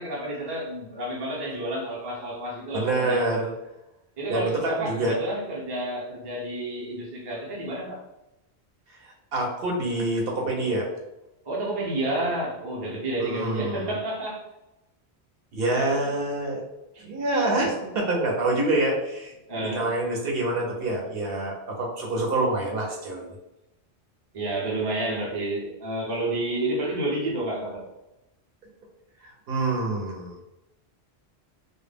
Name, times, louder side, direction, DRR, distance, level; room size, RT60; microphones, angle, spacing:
voice 1, 0.0-3.2 4.2-8.1 11.4-14.4 16.9-17.1 19.5-19.9 24.3-27.8, right 1 dB, 30° right, -4 dB, 0.5 m, -30 dB
voice 2, 2.7-3.5 4.3-5.2 9.0-10.9 13.2-13.9 15.5-16.6 17.0-23.3 29.5-30.4, right 2 dB, 65° right, -1 dB, 0.8 m, -26 dB
2.2 x 2.0 x 3.3 m, 0.93 s
omnidirectional pair, 1.1 m